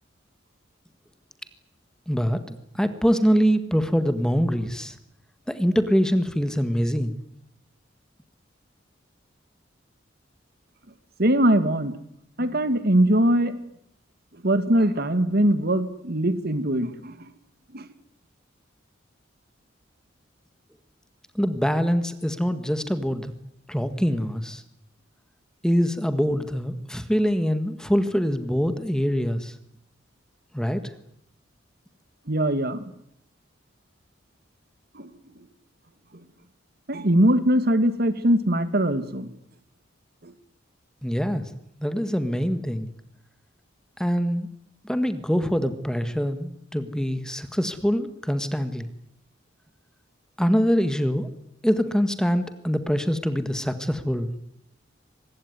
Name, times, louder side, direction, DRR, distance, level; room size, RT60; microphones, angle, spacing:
voice 1, 2.1-5.0 5.5-7.2 21.4-23.3 23.7-24.6 25.6-29.5 30.5-30.8 41.0-41.5 41.8-42.9 44.0-44.5 44.8-48.9 50.4-51.3 51.6-54.3, equal, 5° left, 10 dB, 1.7 m, -24 dB
voice 2, 11.2-12.0 12.4-13.6 14.4-17.3 17.7-17.9 32.3-32.8 34.9-35.1 36.9-39.3 40.2-40.3, right 1 dB, 55° right, 12 dB, 2.2 m, -21 dB
24.5 x 20.5 x 9.6 m, 0.72 s
head